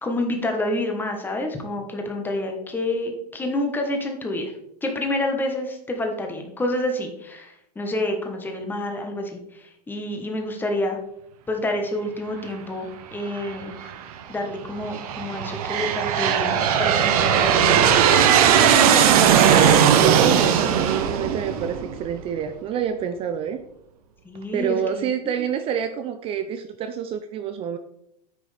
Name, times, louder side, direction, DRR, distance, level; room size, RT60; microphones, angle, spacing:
voice 1, 0.0-4.5 4.8-11.0 11.5-13.7 14.3-18.0 24.2-25.3, left 1 dB, 10° left, 3 dB, 1.3 m, -28 dB
Aircraft, 13.4-13.9 14.6-22.2, right 8 dB, 60° right, 1.0 m, -18 dB
voice 2, 19.7-23.6 24.5-27.8, right 8 dB, 25° right, 8 dB, 0.5 m, -27 dB
9.5 x 6.1 x 3.4 m, 0.78 s
hypercardioid pair, 135°, 21 cm